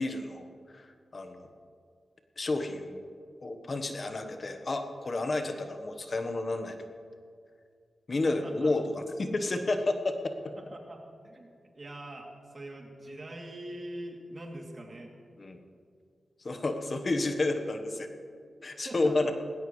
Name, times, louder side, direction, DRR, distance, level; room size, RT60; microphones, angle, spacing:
voice 1, 0.0-1.5 2.4-3.0 3.4-6.9 8.1-10.5 15.4-15.6 16.4-18.1 18.6-19.3, left 2 dB, 50° left, 6 dB, 1.2 m, -31 dB
voice 2, 8.1-8.7 10.6-15.1 18.8-19.3, right 1 dB, 45° right, 0 dB, 2.8 m, -43 dB
19.0 x 17.5 x 3.2 m, 2.2 s
cardioid pair, 70°, 0 cm